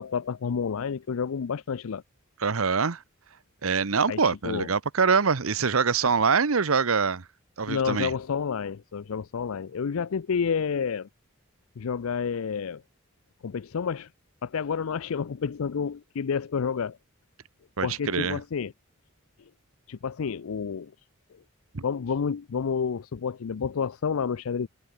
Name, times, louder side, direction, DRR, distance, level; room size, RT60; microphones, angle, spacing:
voice 1, 0.0-2.0 4.1-4.7 6.0-6.1 7.7-11.1 11.8-12.8 13.4-14.1 14.4-17.0 17.8-18.7 19.9-20.9 21.3-21.4 21.8-24.7, left 6 dB, 80° left, 0.5 m, -29 dB
voice 2, 2.4-3.0 3.6-7.2 7.6-8.1 17.8-18.4 21.7-21.8, right 5 dB, 80° right, 0.9 m, -24 dB
head